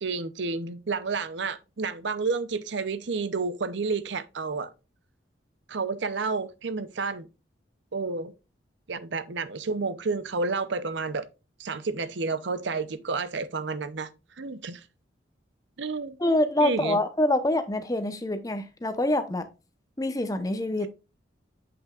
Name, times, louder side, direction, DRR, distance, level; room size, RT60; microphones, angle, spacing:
voice 1, 0.0-4.7 5.7-7.3 7.9-8.3 8.9-11.3 11.6-14.1 14.4-14.8 15.8-16.2 16.6-17.0, right 4 dB, 70° right, 0.6 m, -30 dB
voice 2, 16.2-19.5 20.0-20.9, left 1 dB, 20° left, 0.7 m, -25 dB
8.0 x 5.9 x 2.4 m
head